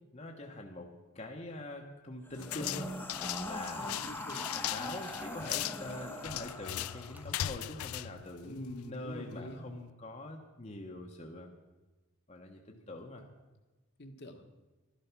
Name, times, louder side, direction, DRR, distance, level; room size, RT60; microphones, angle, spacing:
voice 1, 0.0-2.9 3.4-3.9 4.5-11.5 12.3-13.3, left 2 dB, 30° left, 1 dB, 1.1 m, -44 dB
sound 1, 2.2-7.5, left 1 dB, 10° left, 1.1 m, -42 dB
sound 2, 2.4-9.0, left 13 dB, 80° left, 0.4 m, -39 dB
sound 3, 3.1-3.2 3.5-3.6 4.0-7.6 8.1-8.2 8.7-8.8, right 1 dB, 5° right, 0.6 m, -55 dB
voice 2, 3.8-4.5 8.4-9.6 14.0-14.5, equal, 50° left, 5 dB, 1.4 m, -45 dB
13.0 x 11.5 x 6.0 m, 1.2 s
head